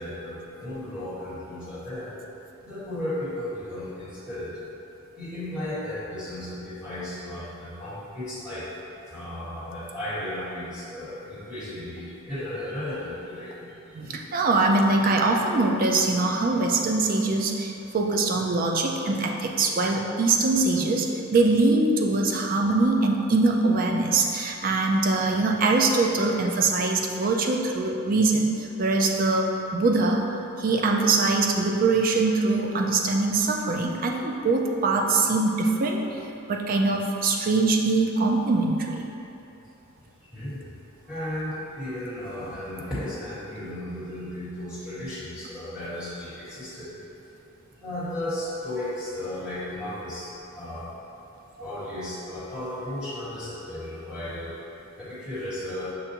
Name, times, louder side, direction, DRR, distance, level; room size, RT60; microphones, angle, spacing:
voice 1, 0.0-2.1 2.6-4.5 5.1-8.6 9.1-13.5 40.3-40.7 41.1-46.9 47.8-50.3 50.5-50.9 51.6-54.6 55.0-55.9, left 1 dB, 5° right, -13 dB, 1.5 m, -34 dB
voice 2, 13.9-30.2 30.6-36.0 36.5-39.0, right 3 dB, 40° right, 2 dB, 0.3 m, -23 dB
6.4 x 2.5 x 2.8 m, 2.8 s
head